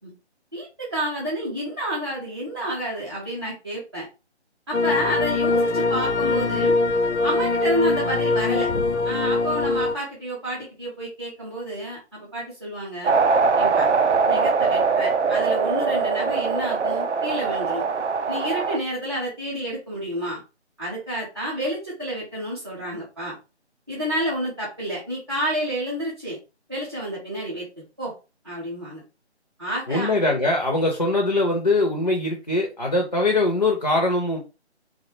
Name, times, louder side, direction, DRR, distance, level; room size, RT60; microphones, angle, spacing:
voice 1, 0.5-4.1 4.7-6.8 7.2-8.7 9.0-13.1 13.6-13.9 14.3-17.8 18.3-20.4 20.8-23.4 23.9-26.4 26.7-27.7 28.0-28.1 28.4-29.0 29.6-30.2, equal, 25° right, -8 dB, 0.5 m, -29 dB
sound 1, 4.7-9.9, left 3 dB, 90° left, 0.5 m, -22 dB
sound 2, 13.0-18.8, right 4 dB, 90° right, 0.5 m, -22 dB
voice 2, 29.9-34.4, left 2 dB, 40° left, 1 dB, 0.4 m, -22 dB
2.4 x 2.1 x 2.6 m, 0.30 s
figure-of-eight pair, 150°, 34 cm